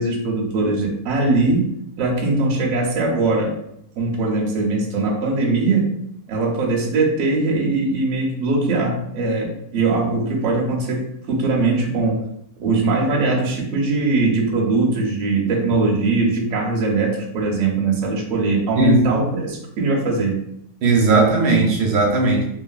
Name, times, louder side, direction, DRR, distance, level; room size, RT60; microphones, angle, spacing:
voice 1, 0.0-3.6 4.0-5.9 6.3-12.2 12.6-20.5, right 3 dB, 65° right, -2 dB, 1.0 m, -21 dB
voice 2, 18.8-19.1 20.8-22.4, right 2 dB, 90° right, -1 dB, 1.2 m, -17 dB
2.9 x 2.5 x 2.3 m, 0.74 s
omnidirectional pair, 1.7 m